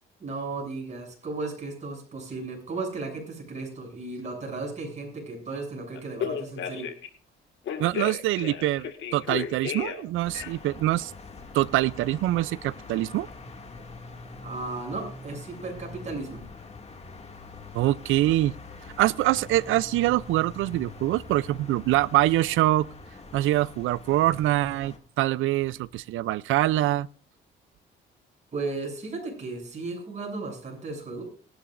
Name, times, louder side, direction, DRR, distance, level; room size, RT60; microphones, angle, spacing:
voice 1, 0.2-6.9 14.4-16.4 28.5-31.2, right 3 dB, 35° right, 7.3 m, -35 dB
Telephone, 5.9-7.1 7.7-10.0 10.3-10.8, left 8 dB, 75° left, 1.9 m, -33 dB
voice 2, 7.8-11.1 11.5-13.3 17.7-18.6 19.0-22.9 23.3-27.1, right 15 dB, 85° right, 0.5 m, -24 dB
sound 1, 10.2-25.0, left 3 dB, 30° left, 2.3 m, -44 dB
21.0 x 11.5 x 2.6 m
cardioid pair, 90°, 20 cm